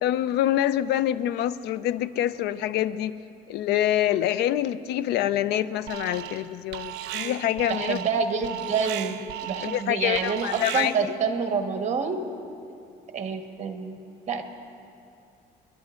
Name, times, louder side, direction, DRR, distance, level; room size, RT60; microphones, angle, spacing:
voice 1, 0.0-3.1 3.5-8.0 9.6-10.9, left 12 dB, 80° left, 15 dB, 0.5 m, -26 dB
Alarm, 5.9-6.5 6.7-11.2, right 12 dB, 85° right, 0.5 m, -36 dB
voice 2, 7.7-12.2 13.1-14.0 14.3-14.4, right 5 dB, 45° right, 5 dB, 1.2 m, -27 dB
30.0 x 11.5 x 2.5 m, 2.6 s
cardioid pair, 110°, 17 cm